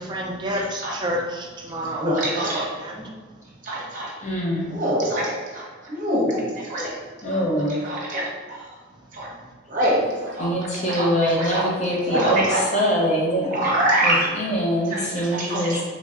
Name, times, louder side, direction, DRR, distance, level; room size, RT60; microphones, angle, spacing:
voice 1, 0.0-3.1, equal, 25° right, 0 dB, 0.4 m, -30 dB
voice 2, 1.9-2.7 3.6-4.1 4.7-6.9 7.3-7.4 7.8-8.6 9.1-9.3 9.7-10.5 10.8-11.1 11.4-11.6 12.1-12.6 13.5-14.3 14.9-15.8, right 1 dB, 40° right, -5 dB, 0.8 m, -24 dB
voice 3, 4.2-4.7 7.2-7.7 10.4-13.5 14.0-15.8, equal, 35° left, -4 dB, 0.5 m, -23 dB
3.0 x 2.6 x 2.4 m, 1.5 s
head